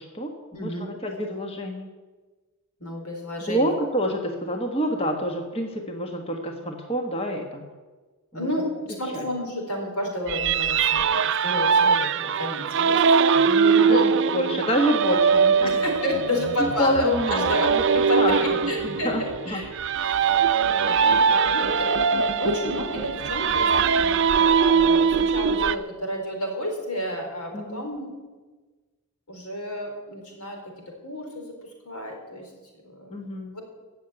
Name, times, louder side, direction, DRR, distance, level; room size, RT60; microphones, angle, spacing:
voice 1, 0.0-1.9 3.4-7.7 8.3-8.5 9.1-9.2 13.5-15.7 16.3-16.4 16.8-17.5 17.9-19.9 27.5-27.9 33.1-33.5, equal, 25° left, 3 dB, 1.4 m, -28 dB
voice 2, 0.5-0.9 2.8-3.7 8.3-11.1 11.4-13.0 13.3-13.5 13.8-14.0 15.6-19.7 19.9-20.3 20.6-28.1 29.3-30.6 31.0-31.5 31.8-32.5 32.8-33.3, left 1 dB, 90° left, 1 dB, 4.1 m, -30 dB
sound 1, 10.3-25.8, right 6 dB, 55° right, 0.5 m, -22 dB
16.0 x 7.2 x 9.2 m, 1.3 s
head